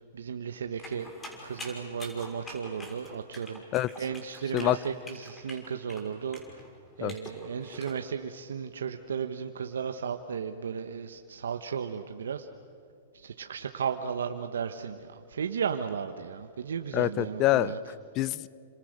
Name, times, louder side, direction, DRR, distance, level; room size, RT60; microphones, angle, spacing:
voice 1, 0.1-1.1 1.4-3.6 4.0-6.6 7.0-12.5 13.1-17.8, right 7 dB, 85° right, 7 dB, 1.2 m, -35 dB
sound 1, 0.8-8.0, left 1 dB, 15° left, 6.0 m, -45 dB
voice 2, 3.7-4.0 4.5-4.8 7.0-7.2 16.9-18.5, left 14 dB, 35° left, 19 dB, 0.7 m, -27 dB
29.5 x 26.5 x 6.7 m, 2.4 s
hypercardioid pair, 125°, 0 cm